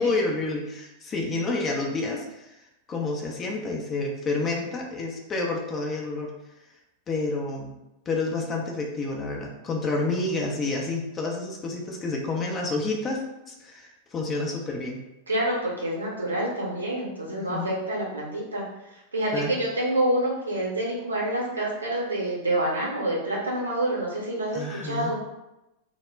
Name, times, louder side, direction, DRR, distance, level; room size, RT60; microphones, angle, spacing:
voice 1, 0.0-2.5 2.9-6.3 7.1-7.8 8.1-13.2 13.5-15.0 17.3-17.7 19.3-19.6 24.5-25.2, left 3 dB, 25° left, 0 dB, 0.5 m, -29 dB
voice 2, 15.3-18.6 18.9-25.2, right 1 dB, 80° right, -4 dB, 0.7 m, -27 dB
2.1 x 2.1 x 3.3 m, 0.94 s
figure-of-eight pair, 90°, 0 cm